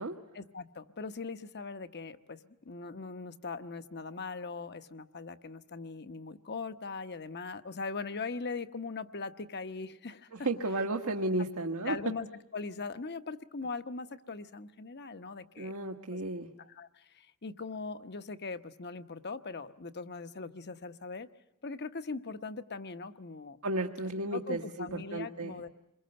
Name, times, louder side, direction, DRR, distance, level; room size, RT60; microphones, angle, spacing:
voice 1, 0.3-10.5 11.8-12.3 12.5-15.7 16.1-16.2 16.7-21.3 21.6-23.6 24.3-25.7, left 4 dB, 50° left, 10 dB, 1.1 m, -40 dB
voice 2, 10.3-12.0 15.6-16.5 23.6-25.6, right 2 dB, 75° right, 3 dB, 1.4 m, -33 dB
27.5 x 22.0 x 7.8 m, 0.89 s
head